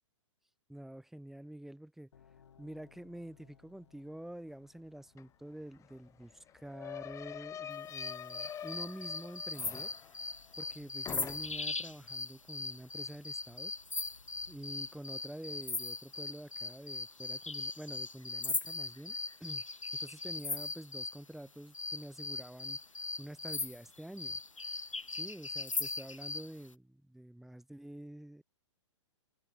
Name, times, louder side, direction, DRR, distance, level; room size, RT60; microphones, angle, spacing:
voice 1, 0.7-2.1 2.6-9.9 10.2-10.3 10.6-13.7 14.5-19.2 19.4-19.6 19.9-22.8 23.2-24.4 25.1-28.4, right 1 dB, ahead, 3.9 m, -47 dB
sound 1, 2.1-8.1, left 8 dB, 65° left, 7.7 m, -66 dB
sound 2, 5.2-5.3 5.5-10.8 11.1-11.8, left 9 dB, 20° left, 3.0 m, -46 dB
sound 3, 7.9-21.2 21.7-26.5, left 3 dB, 90° left, 0.9 m, -39 dB
figure-of-eight pair, 115°, 16 cm